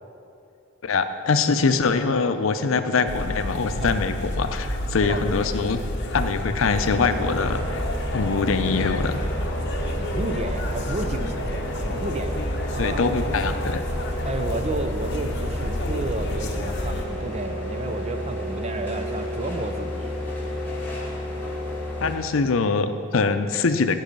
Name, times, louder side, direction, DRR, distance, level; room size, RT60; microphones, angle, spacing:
voice 1, 0.8-5.8 6.1-7.8 8.1-9.2 12.8-13.8 22.0-24.0, left 4 dB, 80° left, 9 dB, 0.6 m, -23 dB
sound 1, 3.1-17.0, left 1 dB, 60° left, 0.9 m, -30 dB
sound 2, 6.6-22.1, equal, 10° left, 2.2 m, -32 dB
voice 2, 9.7-13.1 14.2-20.1, right 2 dB, 35° right, 8 dB, 0.6 m, -32 dB
15.0 x 5.5 x 5.3 m, 2.6 s
head